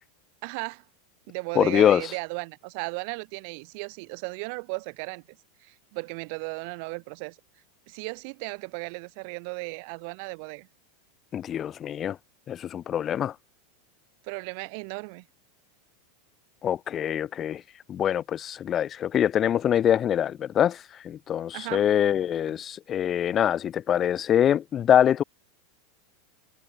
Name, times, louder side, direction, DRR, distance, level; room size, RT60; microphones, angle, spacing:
voice 1, 0.4-0.8 1.3-5.2 5.6-7.4 7.9-10.7 14.2-15.2 21.5-21.9, right 35 dB, 60° right, 7.5 m, -35 dB
voice 2, 1.5-2.0 11.3-12.2 12.5-13.3 16.6-17.6 17.9-25.2, left 10 dB, 30° left, 4.3 m, -24 dB
supercardioid pair, 120°, 0 cm